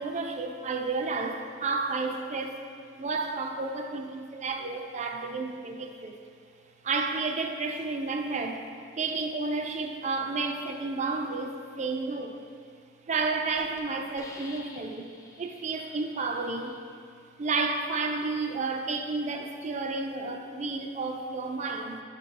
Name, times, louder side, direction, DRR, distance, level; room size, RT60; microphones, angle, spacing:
voice 1, 0.0-2.6 3.0-6.2 6.8-8.7 9.0-12.5 13.1-15.1 15.4-16.8 17.4-22.0, right 3 dB, 40° right, 4 dB, 0.4 m, -31 dB
Hiss, 12.6-12.8 13.2-13.3 13.6-13.8 14.2-16.8, left 2 dB, 20° left, 0.5 m, -49 dB
7.3 x 5.4 x 2.5 m, 2.2 s
head